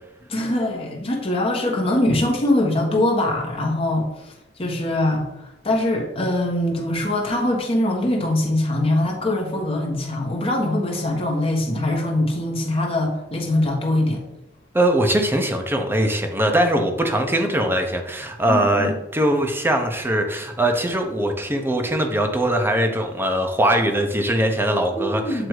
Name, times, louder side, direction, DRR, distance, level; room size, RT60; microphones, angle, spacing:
voice 1, 0.3-14.2 18.5-19.0 24.9-25.5, left 1 dB, 30° left, 0 dB, 1.1 m, -23 dB
voice 2, 14.7-25.5, right 1 dB, 10° right, 3 dB, 0.7 m, -21 dB
7.8 x 2.6 x 4.7 m, 0.90 s
head